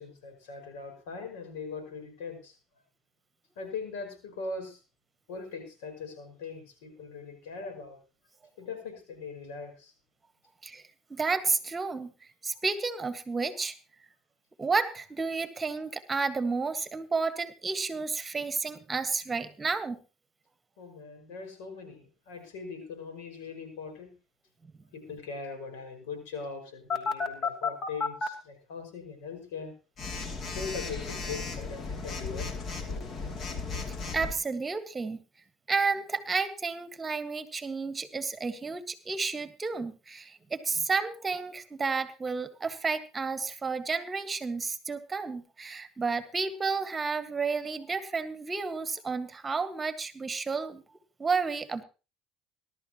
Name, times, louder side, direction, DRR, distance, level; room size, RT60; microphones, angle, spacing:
voice 1, 0.0-2.6 3.6-4.8 5.3-8.0 8.6-9.9 20.8-24.1 24.9-29.7 30.5-32.5 32.9-33.1 33.5-33.6, left 4 dB, 90° left, 5 dB, 5.5 m, -41 dB
voice 2, 11.1-12.1 12.4-13.7 14.6-20.0 34.1-35.2 35.7-50.8 51.2-51.8, right 4 dB, 20° right, 11 dB, 1.6 m, -31 dB
Telephone, 26.9-28.3 30.0-34.3, left 4 dB, 45° left, 2.8 m, -34 dB
20.5 x 12.0 x 3.0 m, 0.31 s
supercardioid pair, 95°, 0 cm